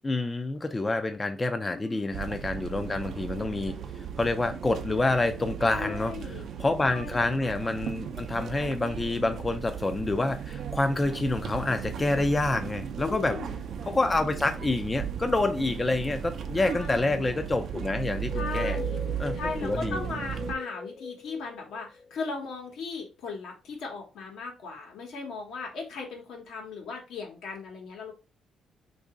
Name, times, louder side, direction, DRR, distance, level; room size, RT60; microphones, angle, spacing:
voice 1, 0.0-3.8 4.2-13.4 13.9-18.8 19.2-20.0, left 2 dB, 20° left, 0.3 m, -28 dB
voice 2, 1.7-2.1 5.7-6.4 6.9-7.5 9.1-9.4 13.0-13.6 16.6-17.1 18.3-19.0 19.3-28.1, left 4 dB, 80° left, 1.1 m, -37 dB
sound 1, 2.1-20.6, right 8 dB, 65° right, 0.4 m, -36 dB
sound 2, 18.1-22.7, left 4 dB, 50° left, 0.8 m, -40 dB
2.9 x 2.6 x 3.6 m
cardioid pair, 90°, 0 cm